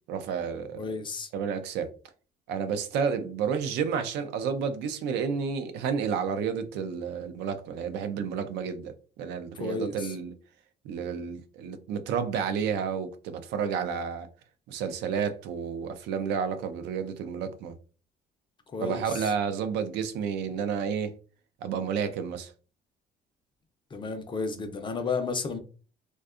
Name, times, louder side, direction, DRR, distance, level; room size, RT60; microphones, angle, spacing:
voice 1, 0.1-0.9 1.3-1.9 2.5-10.3 10.8-14.3 14.7-17.7 18.8-21.1 21.6-22.5, right 6 dB, 85° right, 0.4 m, -31 dB
voice 2, 0.7-1.3 9.6-9.9 18.7-19.0 23.9-25.6, left 4 dB, 30° left, 0.5 m, -32 dB
2.6 x 2.2 x 2.4 m
cardioid pair, 110°, 17 cm